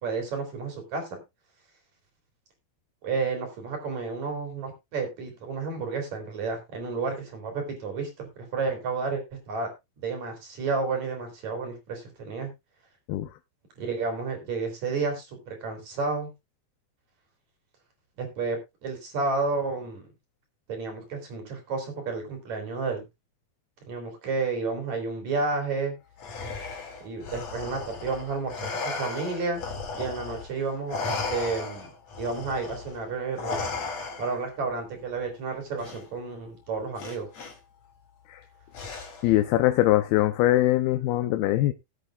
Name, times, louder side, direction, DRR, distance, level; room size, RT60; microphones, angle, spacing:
voice 1, 0.0-1.2 3.0-8.1 8.4-9.7 10.0-12.5 13.8-16.3 18.2-20.1 20.7-23.0 23.9-26.0 27.0-29.6 30.0-31.9 32.2-33.6 34.2-37.3, right 4 dB, 50° right, 4.4 m, -31 dB
Respiratory sounds, 26.2-30.5 30.9-34.5 35.8-36.0 37.0-37.5 38.7-39.4, left 4 dB, 50° left, 3.3 m, -35 dB
voice 2, 39.2-41.7, left 15 dB, 85° left, 2.6 m, -22 dB
18.0 x 8.3 x 2.4 m
omnidirectional pair, 4.3 m